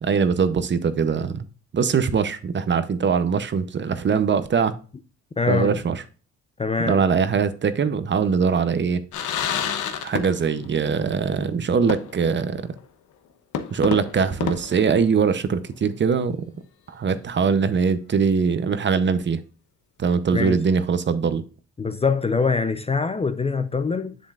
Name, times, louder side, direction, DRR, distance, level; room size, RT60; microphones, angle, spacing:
voice 1, 0.0-1.5 1.7-4.8 5.5-6.0 6.8-9.0 10.0-12.6 13.7-16.4 16.9-19.4 20.0-21.4, right 6 dB, 40° right, 0.7 m, -22 dB
voice 2, 5.4-5.8 6.6-7.0 20.3-20.6 21.8-24.2, left 4 dB, 20° left, 0.5 m, -23 dB
sound 1, 9.1-10.7 11.0-11.1 11.9-12.4 12.8-12.9 13.5-15.5, left 8 dB, 75° left, 1.0 m, -29 dB
7.5 x 7.1 x 2.4 m
cardioid pair, 90°, 30 cm